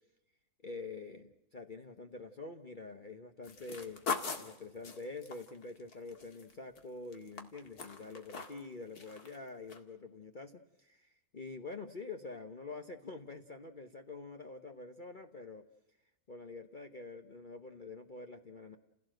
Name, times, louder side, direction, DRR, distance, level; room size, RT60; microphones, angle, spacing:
voice 1, 0.6-4.1 4.4-15.6 16.3-18.8, left 3 dB, 35° left, 5 dB, 1.1 m, -46 dB
sound 1, 3.4-6.8 7.1-8.7 9.0-9.4 9.7-9.8, left 4 dB, 80° left, 2.6 m, -41 dB
30.0 x 16.5 x 7.8 m, 0.94 s
omnidirectional pair, 1.6 m